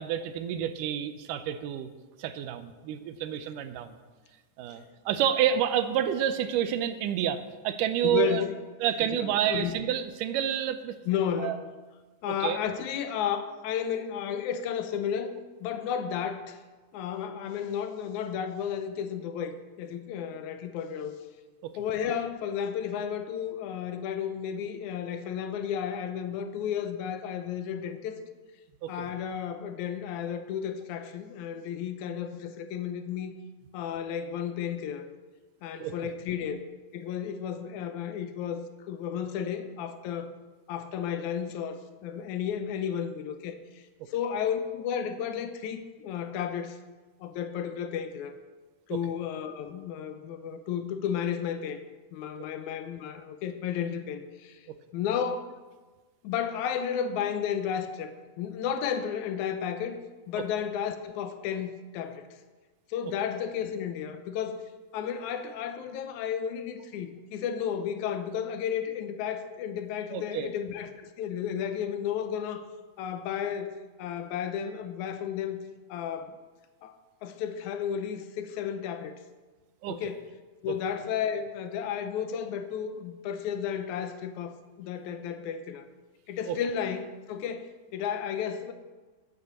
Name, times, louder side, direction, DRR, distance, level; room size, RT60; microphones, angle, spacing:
voice 1, 0.0-1.9 2.2-4.0 4.6-8.4 8.8-11.0 11.4-11.6 12.3-12.6 21.6-21.8 28.8-29.1 35.8-35.9 48.9-49.0 70.1-70.5 79.8-80.0 80.7-80.8 86.5-86.6, right 10 dB, 90° right, 10 dB, 2.3 m, -29 dB
voice 2, 8.0-8.6 9.1-9.7 11.1-11.6 12.2-15.3 15.6-16.6 16.9-21.2 21.8-28.2 28.9-33.3 33.7-35.1 35.6-36.6 36.9-40.3 40.7-46.8 47.2-48.4 48.9-51.8 52.1-54.7 54.9-55.6 56.2-58.1 58.4-60.0 60.3-62.3 62.9-64.6 64.9-72.7 73.0-73.7 74.0-75.6 75.9-76.4 76.8-79.2 79.9-80.3 80.6-85.9 86.3-88.7, left 8 dB, 75° left, 9 dB, 2.0 m, -33 dB
9.3 x 8.2 x 6.8 m, 1.3 s
omnidirectional pair, 3.6 m